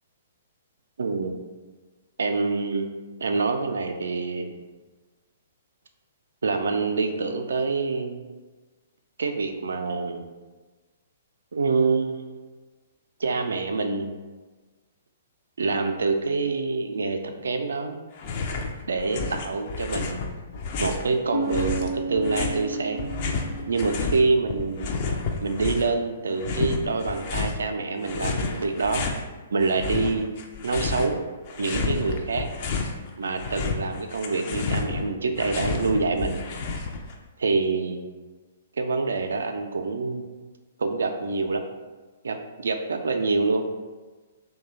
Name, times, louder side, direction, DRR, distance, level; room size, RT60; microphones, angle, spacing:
voice 1, 1.0-1.4 2.2-2.9 3.2-4.5 6.4-8.2 9.2-10.2 11.5-12.5 13.2-14.1 15.6-18.0 18.9-20.2 20.8-23.1 23.7-24.9 25.4-29.1 29.5-30.3 30.6-31.2 31.6-32.5 33.2-36.4 37.4-38.1 38.7-40.3 40.8-41.6 42.2-43.6, right 4 dB, 70° right, 6 dB, 0.3 m, -26 dB
sound 1, 18.2-18.7 19.0-21.1 21.5-24.2 24.5-26.0 26.4-27.6 28.0-29.2 29.6-31.2 31.4-32.9 33.3-37.1, left 4 dB, 40° left, 0.4 m, -30 dB
Bass guitar, 21.3-25.1, right 3 dB, 85° left, 0.6 m, -33 dB
3.0 x 2.2 x 3.9 m, 1.3 s
figure-of-eight pair, 120°, 0 cm